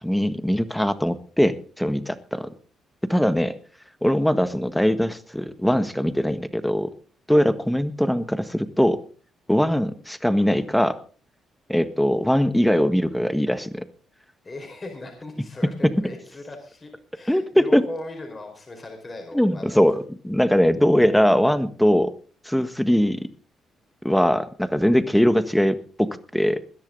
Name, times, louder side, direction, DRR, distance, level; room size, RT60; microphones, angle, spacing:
voice 1, 0.0-2.5 3.0-3.5 4.0-6.9 7.3-9.0 9.5-11.0 11.7-13.8 15.6-16.0 17.3-17.9 19.3-22.1 22.4-23.3 24.0-26.6, equal, 5° left, 11 dB, 1.5 m, -21 dB
voice 2, 14.4-19.7, left 2 dB, 30° left, 3 dB, 4.5 m, -38 dB
21.0 x 10.5 x 3.9 m, 0.40 s
cardioid pair, 90°, 0 cm